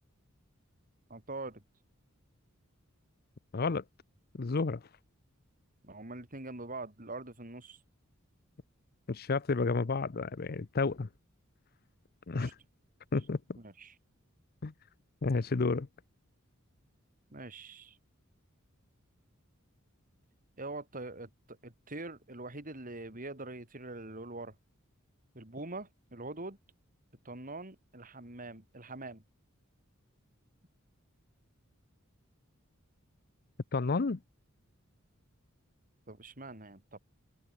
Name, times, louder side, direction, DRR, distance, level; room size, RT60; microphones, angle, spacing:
voice 1, 1.1-1.6 5.8-7.8 12.3-12.5 13.6-13.9 17.3-18.0 20.6-24.5 25.3-26.6 27.2-29.2 36.1-37.0, right 2 dB, 40° right, 4.4 m, -44 dB
voice 2, 3.5-3.8 4.4-4.8 9.1-11.1 12.3-12.5 13.1-13.4 14.6-14.7 15.2-15.9 33.7-34.2, left 4 dB, 50° left, 0.6 m, -30 dB
open air
head